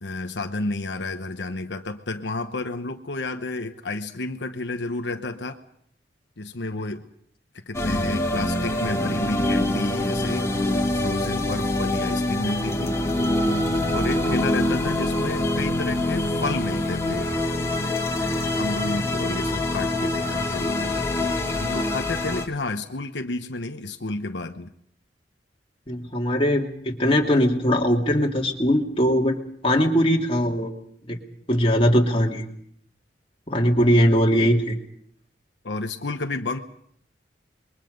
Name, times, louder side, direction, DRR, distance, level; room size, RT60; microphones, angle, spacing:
voice 1, 0.0-5.6 6.4-7.0 7.6-13.0 13.9-17.3 18.5-24.7 35.6-36.6, left 2 dB, 80° left, 6 dB, 1.1 m, -31 dB
sound 1, 7.7-22.5, left 1 dB, 15° left, 2.4 m, -25 dB
voice 2, 25.9-29.4 29.6-30.7 31.1-31.2 31.5-32.4 33.5-34.8, equal, 30° left, 0 dB, 2.7 m, -20 dB
27.5 x 22.0 x 5.3 m, 0.68 s
head